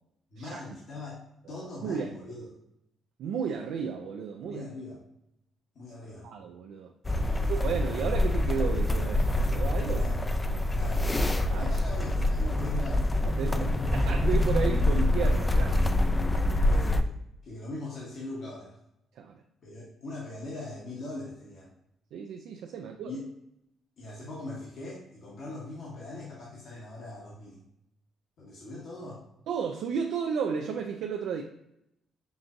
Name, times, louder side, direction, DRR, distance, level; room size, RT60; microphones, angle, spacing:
voice 1, 0.3-1.2 1.5-2.5 4.4-5.0 5.7-6.3 7.2-7.5 9.9-10.2 10.7-11.1 11.5-13.9 16.6-18.8 19.6-21.7 23.0-23.3 24.0-27.6 28.4-29.2, left 2 dB, 65° left, -5 dB, 1.1 m, -41 dB
voice 2, 1.5-2.2 3.2-4.6 6.2-6.9 7.5-10.0 11.5-11.7 13.3-16.6 19.2-19.4 22.1-23.1 29.5-31.4, right 6 dB, 80° right, 3 dB, 0.3 m, -33 dB
sound 1, 7.0-17.0, left 1 dB, 20° left, 0.3 m, -26 dB
5.9 x 2.6 x 2.5 m, 0.80 s
cardioid pair, 90°, 0 cm